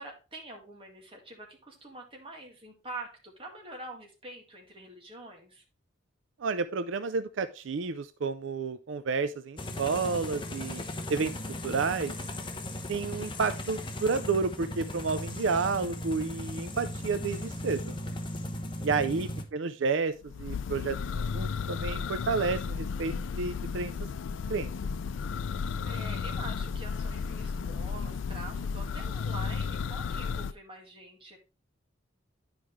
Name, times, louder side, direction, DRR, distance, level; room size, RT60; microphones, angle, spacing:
voice 1, 0.0-5.6 18.5-18.9 19.1-19.3 25.8-31.4, right 2 dB, 30° right, 1 dB, 1.9 m, -45 dB
voice 2, 6.4-10.8 11.1-11.3 11.6-12.1 12.9-17.9 18.8-23.9 24.5-24.7, right 4 dB, 85° right, 12 dB, 0.5 m, -30 dB
sound 1, 9.6-19.4, left 1 dB, 25° left, 0.9 m, -37 dB
Church bell, 20.2-30.5, left 5 dB, 80° left, 0.4 m, -33 dB
10.5 x 5.1 x 3.1 m, 0.32 s
head